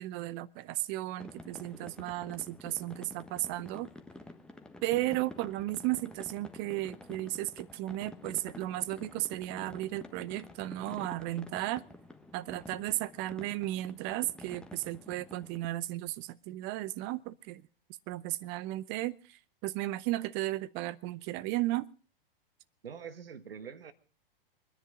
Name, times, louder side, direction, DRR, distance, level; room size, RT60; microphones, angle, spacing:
voice 1, 0.0-3.9 4.8-11.8 12.3-17.6 18.1-21.8, right 16 dB, 35° right, 21 dB, 0.8 m, -35 dB
sound 1, 1.2-15.7, left 1 dB, 5° left, 1.3 m, -49 dB
voice 2, 22.8-23.9, right 7 dB, 75° right, 13 dB, 1.5 m, -44 dB
24.0 x 10.5 x 5.0 m, 0.37 s
figure-of-eight pair, 100°, 29 cm